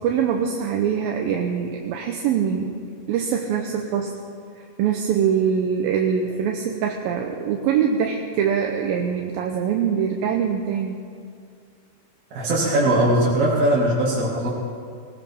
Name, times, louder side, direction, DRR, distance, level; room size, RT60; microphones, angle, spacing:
voice 1, 0.0-2.7 3.1-4.1 4.6-11.0, right 7 dB, 75° right, 2 dB, 2.4 m, -23 dB
voice 2, 12.3-14.5, right 1 dB, 50° right, -7 dB, 3.1 m, -20 dB
19.5 x 18.5 x 3.6 m, 2.2 s
omnidirectional pair, 4.5 m